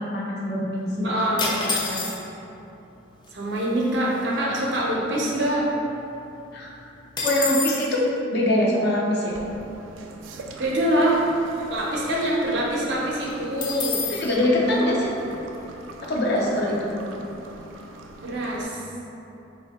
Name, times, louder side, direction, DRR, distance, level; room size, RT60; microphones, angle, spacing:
voice 1, 0.0-1.1 6.5-6.7 7.2-8.0 8.3-9.4 14.1-15.1 16.1-16.9, left 1 dB, 60° left, -4 dB, 0.7 m, -23 dB
voice 2, 1.0-2.1 3.3-5.7 10.6-11.2 11.6-14.0 18.2-18.8, right 1 dB, 65° right, -4 dB, 0.7 m, -25 dB
sound 1, 1.4-2.5 3.3-3.4 3.6-3.9 4.3-5.8 6.1-6.2 6.5-7.9 13.6-14.3, left 3 dB, 25° left, 0.3 m, -29 dB
sound 2, 9.3-18.7, right 2 dB, 85° right, 0.4 m, -43 dB
3.2 x 2.6 x 4.2 m, 2.9 s
head